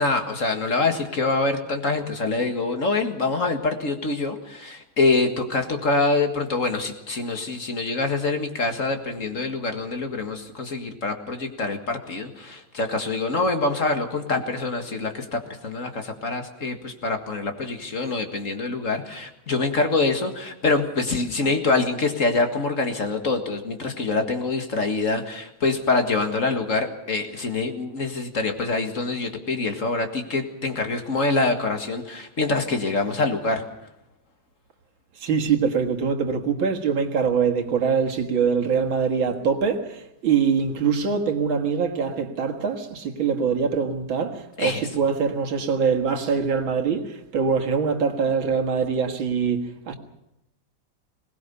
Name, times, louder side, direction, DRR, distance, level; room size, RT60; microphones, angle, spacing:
voice 1, 0.0-33.6 44.6-44.9, left 3 dB, 40° left, 2.1 m, -25 dB
voice 2, 35.2-49.9, right 6 dB, 90° right, 2.5 m, -23 dB
21.5 x 19.0 x 7.0 m
omnidirectional pair, 2.1 m